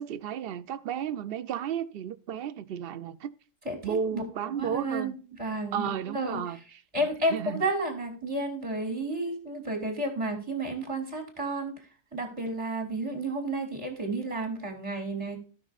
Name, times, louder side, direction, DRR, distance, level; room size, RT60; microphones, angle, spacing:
voice 1, 0.0-3.3 3.8-5.2 5.7-6.6 7.0-7.6, right 8 dB, 55° right, 0.7 m, -33 dB
voice 2, 3.6-4.2 4.6-6.4 6.9-11.7 12.1-15.4, right 2 dB, 25° right, 3.1 m, -31 dB
17.5 x 6.1 x 2.4 m
omnidirectional pair, 1.4 m